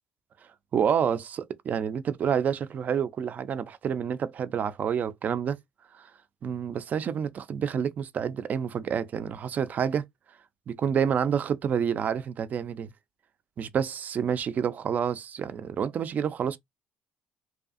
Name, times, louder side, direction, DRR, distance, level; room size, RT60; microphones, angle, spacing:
voice 1, 0.7-5.6 5.9-6.1 6.4-10.0 10.7-12.9 13.6-16.6, right 7 dB, 50° right, 0.4 m, -28 dB
2.5 x 2.3 x 2.4 m
supercardioid pair, 75°, 4 cm